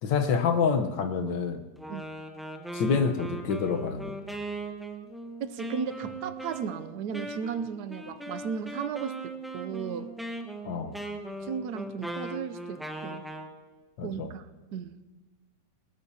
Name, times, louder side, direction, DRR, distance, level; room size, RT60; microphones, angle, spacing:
voice 1, 0.0-1.6 2.7-4.2 10.6-11.0 14.0-14.3, left 5 dB, 75° left, 5 dB, 1.7 m, -27 dB
Wind instrument woodwind instrument, 1.8-13.5, right 1 dB, ahead, 0.5 m, -39 dB
voice 2, 5.4-10.2 11.4-13.3 14.0-14.5 14.7-15.0, right 7 dB, 70° right, 12 dB, 1.2 m, -35 dB
21.5 x 19.0 x 2.8 m, 1.2 s
omnidirectional pair, 2.0 m